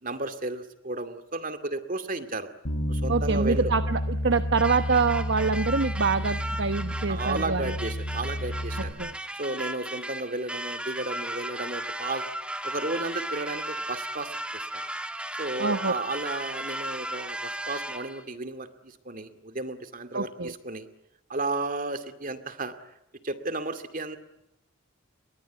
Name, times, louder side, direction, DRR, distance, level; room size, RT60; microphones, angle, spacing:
voice 1, 0.0-2.5 2.9-3.7 7.1-8.9 9.4-12.3 12.6-14.6 15.4-20.9 21.3-22.7 23.2-24.2, right 2 dB, 40° right, 9 dB, 2.3 m, -33 dB
Bass guitar, 2.6-8.9, equal, 75° left, 7.9 m, -30 dB
voice 2, 3.1-7.7 9.0-9.1 15.6-15.9 20.1-20.5, right 4 dB, 60° right, 9 dB, 1.0 m, -25 dB
sound 1, 4.6-18.2, right 1 dB, 5° right, 1.6 m, -36 dB
29.5 x 23.0 x 8.4 m, 0.82 s
head